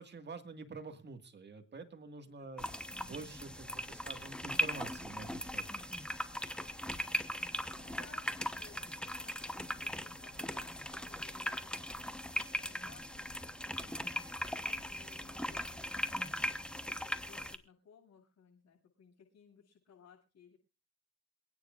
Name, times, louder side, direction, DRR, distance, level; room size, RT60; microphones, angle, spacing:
voice 1, 0.0-5.7, right 4 dB, 35° right, 6 dB, 1.9 m, -47 dB
voice 2, 2.2-3.1 6.5-7.1 7.4-20.6, left 7 dB, 65° left, -7 dB, 7.2 m, -62 dB
sound 1, 2.6-17.6, left 1 dB, 5° left, 1.0 m, -39 dB
27.5 x 9.6 x 2.5 m, 0.32 s
cardioid pair, 90°, 30 cm